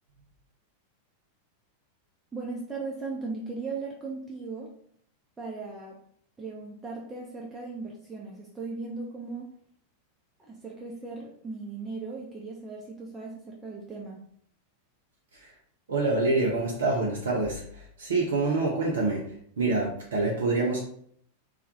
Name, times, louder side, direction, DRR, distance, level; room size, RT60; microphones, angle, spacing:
voice 1, 2.3-4.7 5.4-6.0 6.4-9.5 10.5-14.2, right 3 dB, 10° right, -3 dB, 0.4 m, -37 dB
voice 2, 15.9-20.8, right 3 dB, 65° right, -3 dB, 0.5 m, -27 dB
2.2 x 2.1 x 2.7 m, 0.63 s
figure-of-eight pair, 90°, 0 cm